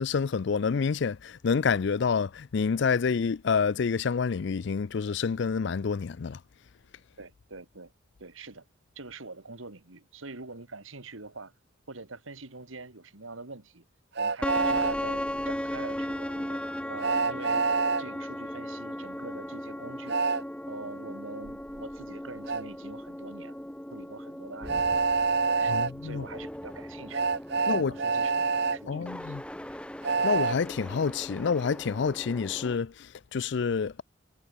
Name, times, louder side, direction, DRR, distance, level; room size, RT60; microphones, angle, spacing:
voice 1, 0.0-6.4 25.7-26.2 27.7-27.9 28.9-29.4 30.2-34.0, left 5 dB, 60° left, 0.4 m, -28 dB
voice 2, 7.2-7.9 8.2-8.6 9.0-11.5 11.9-13.9 14.2-17.7 18.0-20.4 20.7-23.6 23.9-24.8 25.5-25.8 26.0-29.4 29.7-29.8, right 3 dB, 85° right, 2.4 m, -44 dB
Train, 14.2-15.0 17.0-18.0 20.1-20.4 22.5-22.6 24.7-25.9 27.1-28.8 30.0-30.6, right 4 dB, 55° right, 1.1 m, -26 dB
sound 1, 14.4-32.8, equal, 5° left, 1.1 m, -37 dB
head